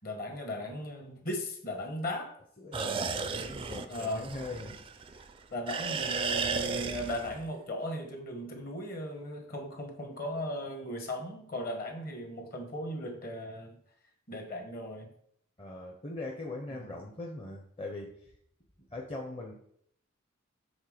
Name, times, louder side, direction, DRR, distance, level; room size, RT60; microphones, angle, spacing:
voice 1, 0.0-2.3 3.9-4.3 5.5-13.8 14.3-15.1 16.7-16.9, left 1 dB, 45° left, 3 dB, 1.3 m, -37 dB
voice 2, 2.6-5.2 15.6-18.3 18.9-19.5, left 2 dB, 25° left, -1 dB, 0.7 m, -41 dB
sound 1, 2.7-5.3 5.7-7.5, right 5 dB, 25° right, 0.3 m, -34 dB
7.2 x 3.6 x 5.0 m, 0.68 s
head